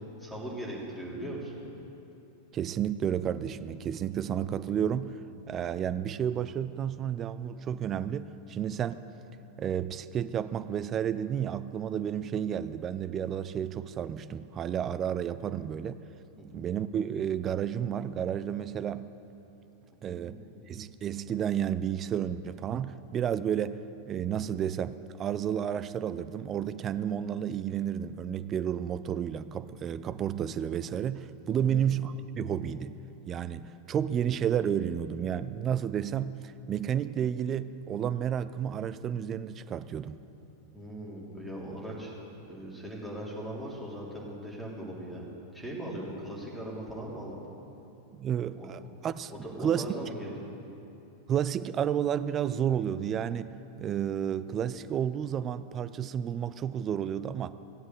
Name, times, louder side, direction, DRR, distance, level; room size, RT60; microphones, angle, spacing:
voice 1, 0.2-1.6 16.4-16.7 20.0-20.4 31.6-31.8 40.7-42.1 42.5-45.2 45.5-47.4 48.6-48.7 49.3-50.4, right 1 dB, ahead, -6 dB, 3.3 m, -39 dB
voice 2, 2.5-5.2 5.5-9.0 9.6-16.0 16.5-19.1 20.0-20.3 20.7-33.0 33.3-40.2 48.1-49.9 51.3-57.5, right 9 dB, 30° right, 13 dB, 0.4 m, -31 dB
15.5 x 8.1 x 7.8 m, 2.9 s
figure-of-eight pair, 90°, 0 cm